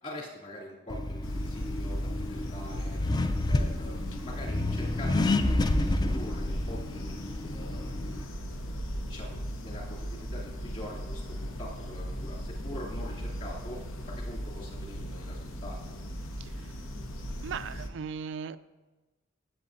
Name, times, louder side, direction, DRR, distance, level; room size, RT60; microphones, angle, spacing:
voice 1, 0.0-3.0 3.5-7.1 7.5-8.4 9.1-15.9, left 1 dB, 40° left, -5 dB, 2.8 m, -44 dB
Accelerating revving vroom, 0.9-8.2, left 2 dB, 20° left, 0.3 m, -30 dB
sound 1, 1.2-17.9, equal, 85° left, 0.9 m, -37 dB
voice 2, 16.4-16.7 17.4-18.6, right 6 dB, 60° right, 13 dB, 0.3 m, -38 dB
15.0 x 8.1 x 2.7 m, 1.2 s
head